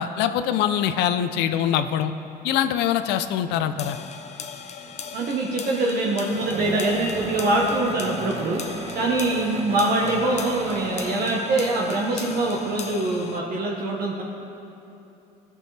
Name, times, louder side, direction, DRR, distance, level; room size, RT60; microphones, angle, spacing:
voice 1, 0.0-2.1 2.4-4.0, left 10 dB, 85° left, 10 dB, 0.5 m, -23 dB
sound 1, 3.8-13.4, left 6 dB, 40° left, 0.6 m, -38 dB
sound 2, 4.9-5.2 6.3-11.6, right 3 dB, 35° right, 0.9 m, -35 dB
voice 2, 5.1-8.6 8.9-14.2, right 2 dB, 65° right, -3 dB, 1.1 m, -24 dB
15.5 x 6.2 x 3.3 m, 2.8 s
cardioid pair, 110°, 17 cm